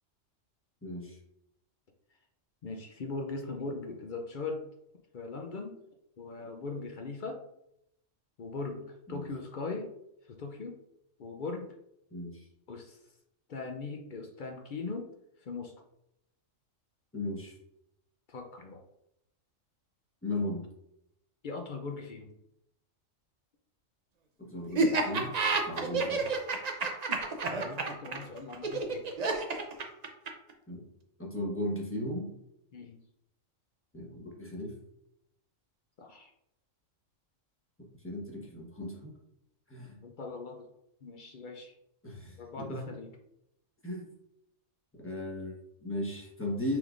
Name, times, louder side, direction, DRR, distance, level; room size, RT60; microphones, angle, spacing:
voice 1, 0.8-1.2 9.1-9.2 12.1-12.5 17.1-17.6 20.2-20.6 24.4-25.3 25.7-26.3 30.7-30.8 31.2-32.3 33.9-34.7 38.0-39.1 39.7-40.0 42.0-42.9 43.8-44.1 45.0-46.8, left 1 dB, 10° left, -3 dB, 1.0 m, -36 dB
voice 2, 2.6-4.6 5.1-5.7 6.2-7.4 8.4-9.9 10.3-10.8 11.2-11.7 12.7-13.0 13.5-15.1 15.4-15.7 18.3-18.8 21.4-22.3 25.8-26.0 27.6-29.2 32.7-33.0 36.0-36.3 40.0-40.7 41.0-41.7 42.4-43.1, left 3 dB, 55° left, 3 dB, 0.5 m, -40 dB
Laughter, 24.7-30.5, right 3 dB, 45° right, 0.5 m, -29 dB
6.0 x 3.4 x 2.5 m, 0.80 s
omnidirectional pair, 1.4 m